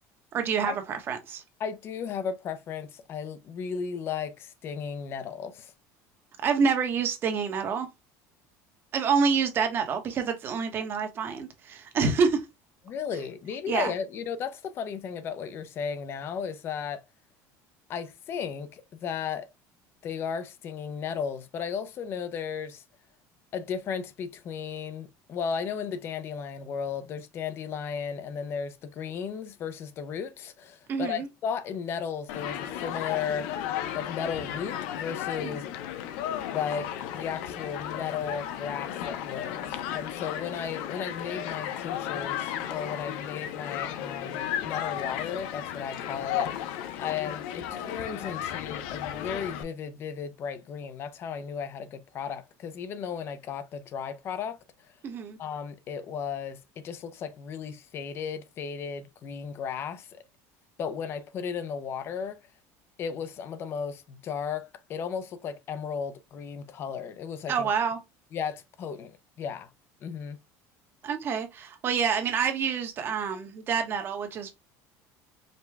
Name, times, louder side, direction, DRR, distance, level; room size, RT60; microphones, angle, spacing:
voice 1, 0.3-1.4 6.4-7.9 8.9-12.5 13.7-13.9 30.9-31.3 35.4-35.6 55.0-55.4 67.5-68.0 71.0-74.6, right 6 dB, 35° right, 1.0 m, -27 dB
voice 2, 1.6-5.7 12.9-17.0 17.9-19.5 20.0-22.8 23.5-33.6 33.9-35.6 36.5-54.6 55.4-60.2 60.8-62.4 63.0-67.7 68.3-69.7 70.0-70.4, left 7 dB, 35° left, 0.5 m, -35 dB
Human group actions, 32.3-49.6, left 10 dB, 80° left, 0.6 m, -34 dB
5.1 x 2.2 x 3.3 m
cardioid pair, 155°, 7 cm